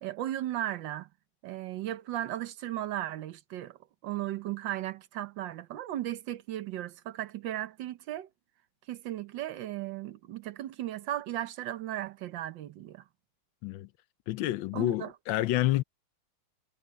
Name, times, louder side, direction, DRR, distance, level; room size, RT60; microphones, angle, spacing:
voice 1, 0.0-1.1 1.4-3.8 4.0-8.3 8.9-13.0 14.7-15.1, right 13 dB, 70° right, 1.5 m, -36 dB
voice 2, 14.3-15.8, left 15 dB, 75° left, 1.3 m, -28 dB
omnidirectional pair, 2.2 m